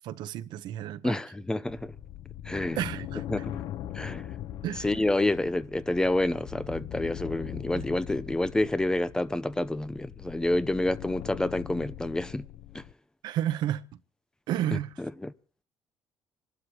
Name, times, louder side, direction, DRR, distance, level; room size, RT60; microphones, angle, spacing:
voice 1, 0.0-1.2 2.7-3.2 4.6-4.9 7.7-7.8 13.2-13.8 14.5-14.9, right 12 dB, 75° right, 0.8 m, -31 dB
voice 2, 1.0-1.9 2.5-2.8 3.3-3.6 3.9-4.3 4.8-12.5 12.7-12.8 15.0-15.3, left 1 dB, 10° left, 0.6 m, -28 dB
sound 1, 1.7-12.9, left 12 dB, 70° left, 0.6 m, -41 dB
26.5 x 12.0 x 2.9 m
cardioid pair, 120°, 8 cm